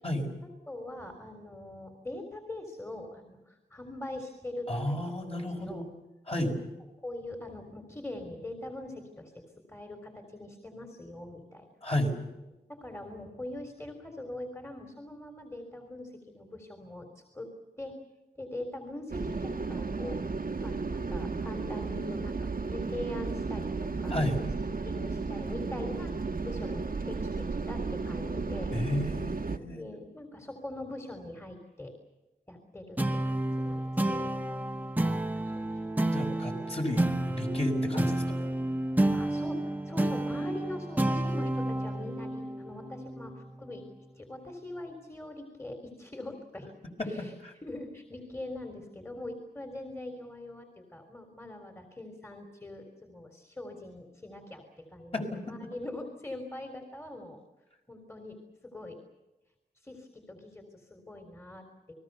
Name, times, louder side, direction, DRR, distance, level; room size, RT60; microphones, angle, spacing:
voice 1, 0.7-5.8 6.4-6.7 7.0-9.4 9.7-11.7 12.7-17.5 17.8-17.9 18.4-20.2 20.6-24.5 24.8-28.7 29.6-31.9 32.5-33.0 33.3-34.3 35.5-35.7 39.1-43.8 44.2-46.7 47.0-47.3 47.6-57.4 57.9-58.4 58.6-59.0 59.8-61.9, left 1 dB, 15° left, 4 dB, 3.7 m, -42 dB
voice 2, 4.7-5.8 6.3-6.5 11.8-12.2 24.1-24.4 28.7-29.8 36.1-38.4 47.0-47.5 55.1-55.5, left 1 dB, 35° left, 1 dB, 5.7 m, -32 dB
sound 1, 19.1-29.6, right 4 dB, 55° right, 1.4 m, -34 dB
sound 2, 33.0-43.8, right 1 dB, 10° right, 1.4 m, -30 dB
30.0 x 20.5 x 6.9 m, 1.0 s
wide cardioid pair, 115°, 17 cm